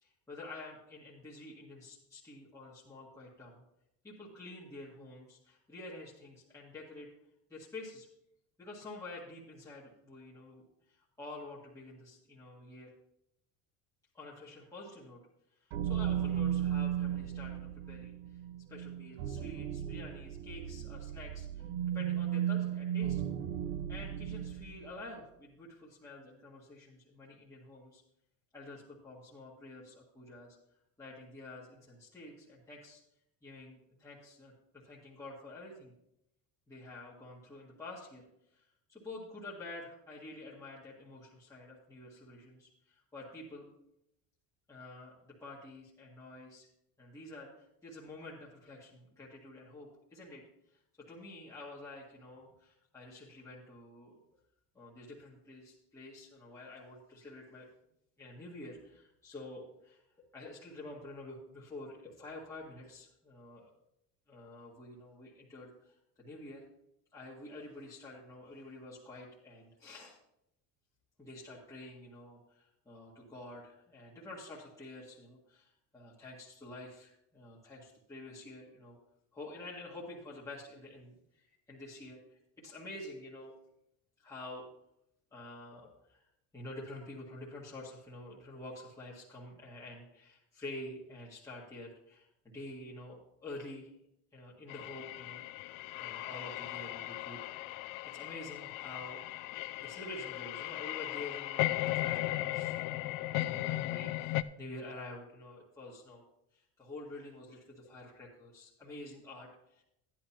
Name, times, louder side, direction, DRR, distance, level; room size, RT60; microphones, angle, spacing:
voice 1, 0.0-3.6 4.0-7.1 7.5-8.1 8.6-12.9 14.1-15.2 15.6-18.1 18.7-21.7 21.9-23.2 23.9-28.0 28.5-30.6 31.0-33.0 33.4-34.5 34.8-35.9 36.7-38.2 38.5-43.7 44.7-46.7 47.0-50.4 50.7-54.2 54.7-57.7 58.2-63.7 64.3-66.6 67.1-70.2 71.2-79.0 79.3-83.5 84.2-84.7 85.3-86.2 86.5-93.9 94.3-95.7 96.0-97.4 98.1-99.5 99.8-106.2 106.5-109.8, left 2 dB, 10° left, -7 dB, 1.7 m, -48 dB
sound 1, 15.7-24.9, right 10 dB, 90° right, 0.8 m, -35 dB
sound 2, 94.7-104.4, left 16 dB, 75° left, 0.5 m, -37 dB
13.5 x 10.5 x 2.9 m, 0.81 s
cardioid pair, 160°, 34 cm